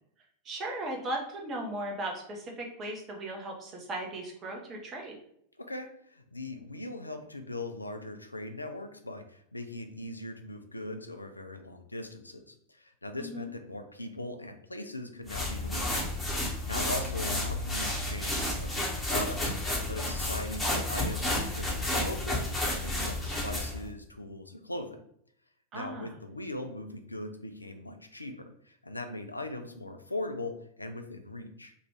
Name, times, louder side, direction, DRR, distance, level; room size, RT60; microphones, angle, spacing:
voice 1, 0.4-5.2 13.2-13.5 25.7-26.1, right 1 dB, 30° right, 0 dB, 0.9 m, -37 dB
voice 2, 5.6-16.1 16.4-22.5 22.8-25.0 25.7-31.7, left 1 dB, 85° left, 6 dB, 0.4 m, -40 dB
sound 1, 15.3-23.8, left 1 dB, 5° left, 1.1 m, -31 dB
3.0 x 2.6 x 4.4 m, 0.68 s
figure-of-eight pair, 90°, 0 cm